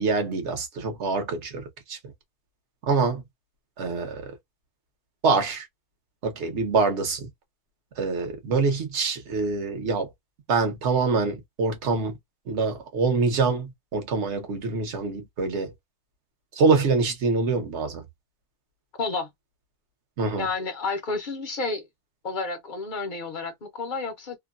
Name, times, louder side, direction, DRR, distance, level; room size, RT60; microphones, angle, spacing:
voice 1, 0.0-2.0 2.8-3.2 3.8-4.4 5.2-5.7 6.2-7.3 8.0-10.1 10.5-12.2 12.5-15.7 16.5-18.0 20.2-20.5, right 4 dB, 55° right, 1.1 m, -25 dB
voice 2, 20.4-21.9 22.2-24.4, left 3 dB, 45° left, 0.7 m, -30 dB
2.8 x 2.2 x 2.3 m
omnidirectional pair, 1.5 m